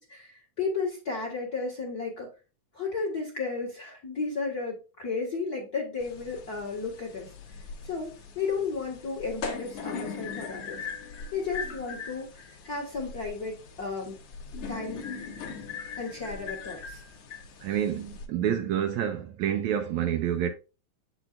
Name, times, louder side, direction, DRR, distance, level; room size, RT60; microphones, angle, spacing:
voice 1, 0.1-2.3 2.7-7.3 7.8-14.2 14.7-15.0 16.0-17.0, left 4 dB, 40° left, 1.6 m, -33 dB
sound 1, 6.0-18.3, left 5 dB, 60° left, 1.8 m, -40 dB
voice 2, 17.6-20.5, right 9 dB, 80° right, 1.8 m, -28 dB
8.0 x 6.2 x 2.4 m
omnidirectional pair, 3.7 m